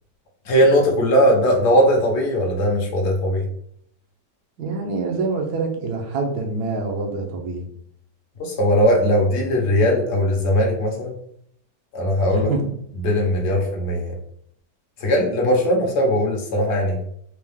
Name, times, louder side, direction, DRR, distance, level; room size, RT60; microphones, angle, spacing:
voice 1, 0.4-3.5 8.4-11.1 11.9-12.5 13.0-14.1 15.0-17.0, equal, 50° left, 0 dB, 1.0 m, -19 dB
voice 2, 4.6-7.7 12.3-12.6, right 3 dB, 70° right, 2 dB, 1.3 m, -26 dB
4.5 x 2.3 x 3.5 m, 0.69 s
omnidirectional pair, 1.9 m